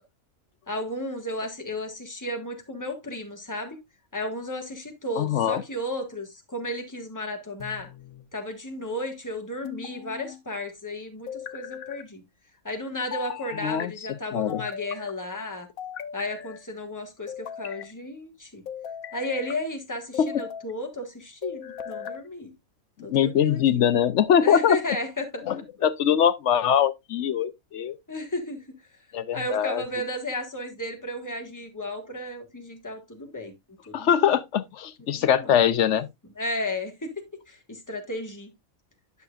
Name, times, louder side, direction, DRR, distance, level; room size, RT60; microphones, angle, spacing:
voice 1, 0.7-3.8 4.1-7.9 8.3-12.2 12.6-15.7 16.1-18.6 19.1-22.5 23.0-23.8 24.4-25.4 28.1-28.6 29.3-33.5 33.9-34.3 35.1-35.6 36.4-38.5, left 1 dB, 15° left, 1.6 m, -33 dB
voice 2, 5.2-5.6 13.6-13.9 14.3-14.6 20.2-20.4 23.1-24.8 25.4-28.0 29.1-29.8 33.9-36.1, left 9 dB, 65° left, 0.9 m, -22 dB
sound 1, 7.6-8.3 9.6-10.4 11.3-12.0 13.1-13.9 14.5-15.1 15.8-16.6 17.3-17.9 18.7-19.6 20.1-20.7 21.4-22.2, left 9 dB, 80° left, 1.3 m, -38 dB
10.5 x 6.7 x 2.4 m
omnidirectional pair, 1.5 m